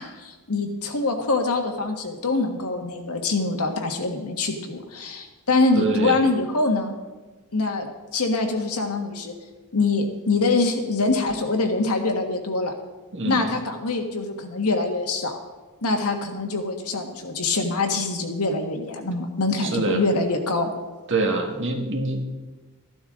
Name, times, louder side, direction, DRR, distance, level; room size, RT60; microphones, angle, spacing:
voice 1, 0.0-6.9 7.5-9.3 9.7-12.7 13.2-15.4 15.8-20.7, left 3 dB, 85° left, 4 dB, 1.6 m, -24 dB
voice 2, 5.8-6.2 13.1-13.5 19.6-20.0 21.1-22.2, right 3 dB, 55° right, 2 dB, 1.9 m, -25 dB
14.0 x 11.5 x 3.8 m, 1.2 s
head